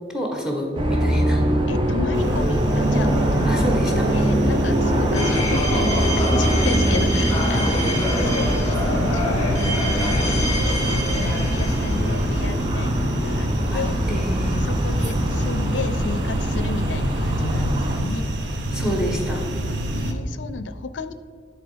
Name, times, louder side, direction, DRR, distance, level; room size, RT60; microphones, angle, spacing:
voice 1, 0.1-1.4 3.4-4.1 13.7-13.8 14.1-14.5 18.7-19.5, equal, 5° right, 1 dB, 1.3 m, -27 dB
sound 1, 0.8-18.0, equal, 25° right, 0.7 m, -22 dB
voice 2, 1.7-10.5 10.9-14.2 14.6-18.3 19.9-21.1, left 4 dB, 85° left, 12 dB, 0.4 m, -33 dB
sound 2, 2.1-20.1, right 1 dB, 70° right, 0.8 m, -29 dB
sound 3, 5.1-12.4, equal, 20° left, 1.4 m, -26 dB
10.5 x 4.1 x 5.0 m, 2.2 s
head